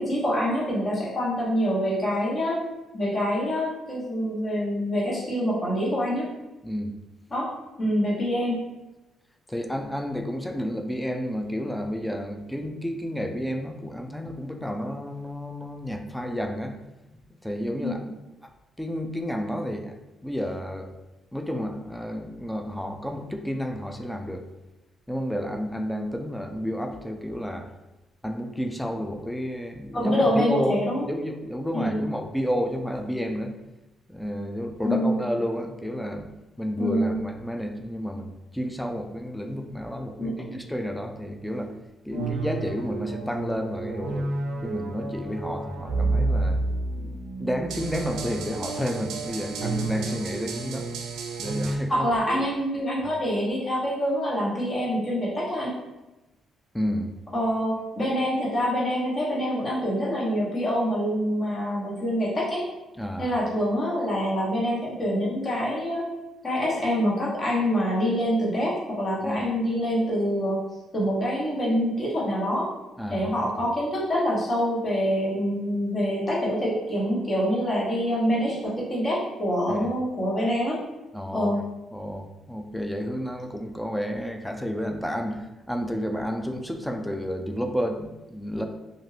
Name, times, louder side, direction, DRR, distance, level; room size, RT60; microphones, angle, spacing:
voice 1, 0.0-2.6 2.9-6.3 7.3-7.5 7.8-8.6 17.8-17.9 29.9-31.0 31.7-32.0 34.8-35.2 36.8-37.2 40.2-40.6 42.1-42.3 51.9-55.7 57.3-62.6 63.2-66.0 66.4-70.6 70.9-72.7 73.1-80.8 81.3-81.6, equal, 35° left, -6 dB, 1.1 m, -26 dB
voice 2, 6.6-6.9 9.5-16.8 17.4-18.1 18.4-18.5 18.8-20.0 20.2-20.9 21.3-24.4 25.1-27.7 28.2-30.8 31.1-33.5 34.1-41.8 42.1-44.3 44.6-46.6 47.0-50.9 51.4-52.4 53.0-53.1 56.7-57.1 63.0-63.3 69.2-69.5 73.0-73.3 79.7-79.9 81.1-81.6 81.9-88.6, equal, 5° left, 5 dB, 0.3 m, -31 dB
sound 1, 42.1-51.8, right 3 dB, 85° right, 0.4 m, -30 dB
2.5 x 2.4 x 3.2 m, 1.0 s
cardioid pair, 90°, 0 cm